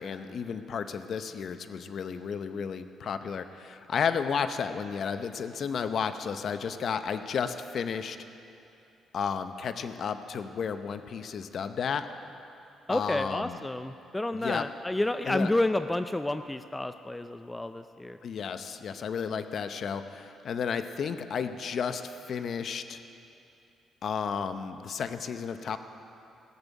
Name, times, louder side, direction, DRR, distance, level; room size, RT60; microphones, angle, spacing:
voice 1, 0.0-8.2 9.1-12.1 12.9-13.6 14.4-14.6 15.3-15.5 18.2-23.0 24.0-25.8, left 6 dB, 60° left, 10 dB, 0.7 m, -32 dB
voice 2, 12.9-18.2, left 1 dB, 10° left, 10 dB, 0.4 m, -30 dB
17.0 x 6.9 x 8.3 m, 2.7 s
cardioid pair, 90°, 0 cm